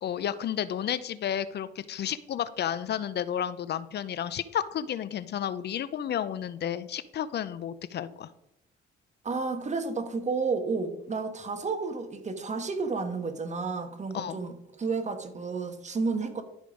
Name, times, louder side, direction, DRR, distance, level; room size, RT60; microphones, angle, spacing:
voice 1, 0.0-8.3 14.1-14.4, left 9 dB, 55° left, 15 dB, 0.5 m, -32 dB
voice 2, 9.2-16.4, right 4 dB, 35° right, 8 dB, 1.3 m, -31 dB
11.5 x 5.1 x 5.1 m, 0.81 s
cardioid pair, 90°, 20 cm